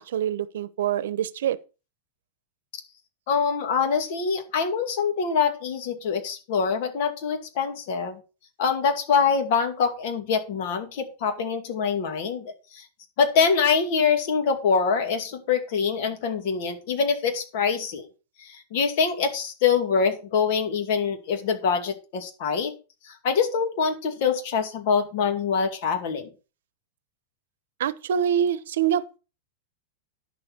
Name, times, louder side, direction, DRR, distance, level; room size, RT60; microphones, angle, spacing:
voice 1, 0.0-1.6 27.8-29.2, right 9 dB, 80° right, 0.8 m, -25 dB
voice 2, 3.3-8.2 8.6-12.8 13.2-18.1 18.4-22.7 23.0-26.3, left 6 dB, 50° left, 2.3 m, -24 dB
10.5 x 7.0 x 4.3 m
supercardioid pair, 160°, 0 cm